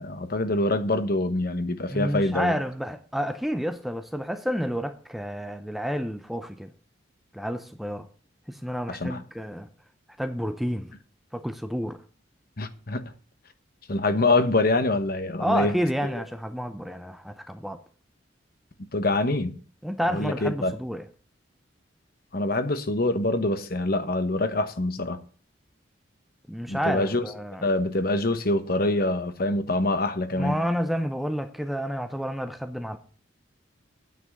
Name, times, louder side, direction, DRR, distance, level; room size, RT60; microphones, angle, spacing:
voice 1, 0.0-2.5 8.9-9.2 12.6-13.0 13.9-15.7 16.1-16.2 18.9-19.5 20.1-20.7 22.3-25.2 26.7-27.2 27.6-30.6, left 2 dB, 50° left, 1.1 m, -25 dB
voice 2, 1.9-6.7 7.3-8.1 8.5-9.7 10.2-10.9 11.3-12.0 15.4-17.8 19.8-21.1 26.5-27.7 30.4-33.0, equal, ahead, 0.6 m, -30 dB
9.3 x 6.0 x 7.9 m
head